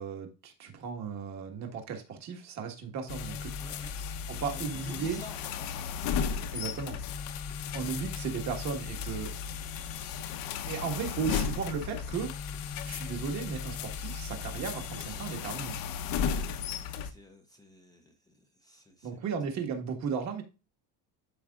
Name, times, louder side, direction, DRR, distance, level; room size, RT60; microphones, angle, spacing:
voice 1, 0.0-3.5 4.3-5.2 6.5-7.0 7.7-9.3 10.7-12.4 12.8-15.7 19.0-20.4, right 6 dB, 45° right, 1.6 m, -35 dB
sound 1, 3.1-17.1, left 7 dB, 55° left, 0.9 m, -35 dB
voice 2, 3.6-4.1 4.5-6.2 16.1-16.4 16.9-19.3, left 1 dB, 10° left, 0.6 m, -51 dB
12.0 x 5.0 x 2.4 m
cardioid pair, 175°, 40 cm